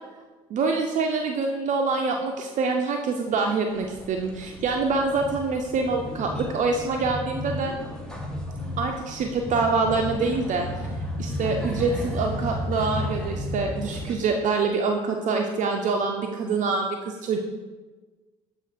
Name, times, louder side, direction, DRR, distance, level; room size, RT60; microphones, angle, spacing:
voice 1, 0.5-7.7 8.8-10.7 11.2-17.4, right 4 dB, 50° right, 3 dB, 0.5 m, -25 dB
sound 1, 3.7-14.2, left 1 dB, 5° left, 1.0 m, -33 dB
7.5 x 2.5 x 5.0 m, 1.3 s
supercardioid pair, 75°, 16 cm